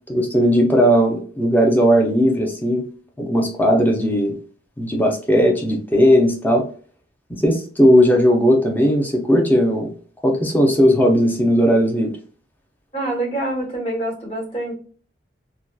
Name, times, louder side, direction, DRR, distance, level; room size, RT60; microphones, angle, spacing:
voice 1, 0.1-2.8 3.2-4.4 4.8-6.6 7.4-9.9 10.2-12.1, equal, 10° left, 1 dB, 0.6 m, -17 dB
voice 2, 12.9-14.7, right 1 dB, 30° left, -4 dB, 1.3 m, -26 dB
2.7 x 2.2 x 2.3 m, 0.42 s
head